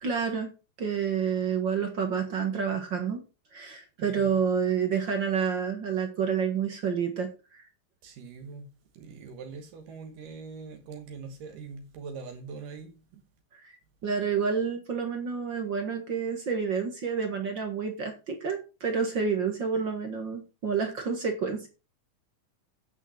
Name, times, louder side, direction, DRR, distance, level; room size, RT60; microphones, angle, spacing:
voice 1, 0.0-3.2 3.5-7.7 13.6-13.7 14.0-21.7, right 6 dB, 45° right, 1.5 m, -29 dB
voice 2, 4.0-4.4 8.0-8.7 8.9-13.2, right 5 dB, 75° right, 2.8 m, -42 dB
9.0 x 6.5 x 6.3 m
omnidirectional pair, 3.9 m